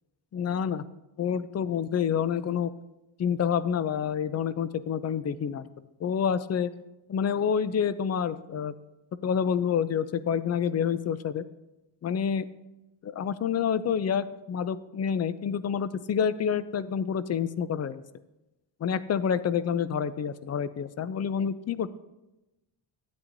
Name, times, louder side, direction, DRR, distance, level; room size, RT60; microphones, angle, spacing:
voice 1, 0.3-0.8 1.2-2.7 3.2-5.7 6.0-6.7 7.1-8.7 9.2-11.5 12.0-12.5 13.0-18.0 18.8-21.9, left 7 dB, 40° left, 15 dB, 0.4 m, -28 dB
12.5 x 9.6 x 2.6 m, 0.97 s
wide cardioid pair, 150°, 44 cm